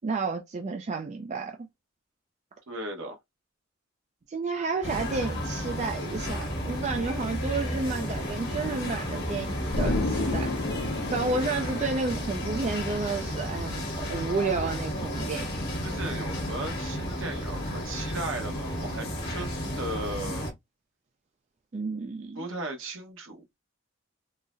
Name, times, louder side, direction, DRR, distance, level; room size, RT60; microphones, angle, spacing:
voice 1, 0.0-1.6 4.3-10.5 11.1-15.5 21.7-22.4, right 4 dB, 35° right, 0.4 m, -31 dB
voice 2, 2.7-3.2 15.8-20.5 22.4-23.4, right 2 dB, 70° right, 1.1 m, -36 dB
sound 1, 4.8-20.5, equal, 55° left, 1.3 m, -32 dB
Explosion, 9.7-12.4, left 2 dB, 70° left, 0.8 m, -30 dB
3.8 x 2.0 x 2.5 m
head